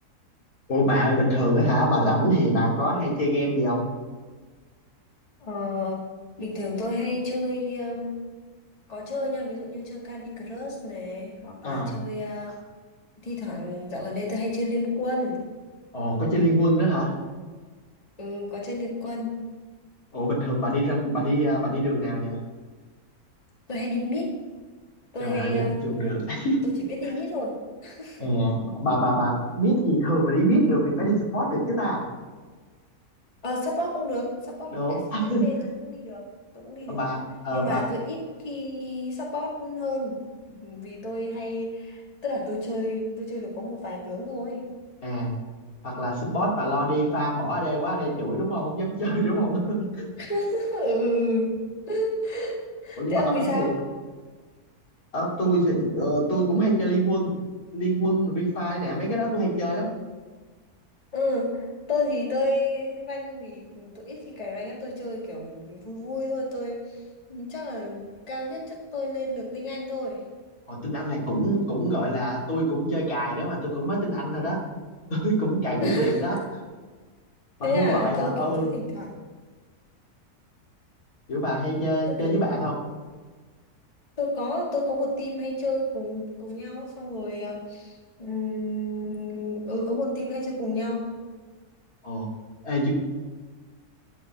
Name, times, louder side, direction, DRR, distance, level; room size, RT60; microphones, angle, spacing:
voice 1, 0.7-3.8 11.6-11.9 15.9-17.1 20.1-22.4 25.2-26.6 27.0-27.1 28.2-32.0 34.7-35.4 36.9-37.8 45.0-45.4 45.8-50.1 53.0-53.7 55.1-57.3 57.7-59.9 70.7-74.6 75.1-76.4 77.6-78.7 81.3-82.8 92.0-92.3 92.6-92.9, right 1 dB, 70° left, -4 dB, 3.4 m, -25 dB
voice 2, 5.4-6.0 6.4-8.1 8.9-12.6 13.2-15.4 18.2-19.4 23.7-24.3 25.1-26.2 26.6-26.7 27.0-27.5 27.8-28.2 33.4-35.0 35.4-36.2 36.5-37.1 37.5-40.2 40.5-44.6 50.2-51.6 51.9-53.7 61.1-67.0 67.3-70.2 75.8-76.4 77.6-79.2 82.1-82.3 84.2-87.9 88.2-91.1, left 1 dB, 25° left, -2 dB, 2.1 m, -30 dB
12.5 x 5.6 x 8.2 m, 1.4 s
omnidirectional pair, 1.6 m